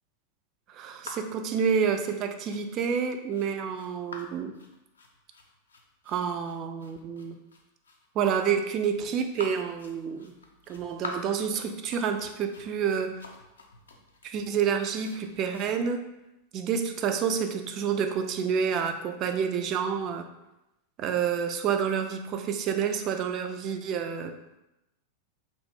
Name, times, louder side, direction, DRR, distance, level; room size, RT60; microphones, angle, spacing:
voice 1, 0.7-4.5 6.1-7.4 8.1-10.3 10.7-13.2 14.2-16.0 16.5-20.3 21.0-24.4, right 7 dB, 35° right, 6 dB, 0.3 m, -28 dB
sound 1, 1.0-15.7, left 4 dB, 70° left, 0.4 m, -47 dB
3.0 x 2.5 x 3.4 m, 0.91 s
figure-of-eight pair, 90°, 0 cm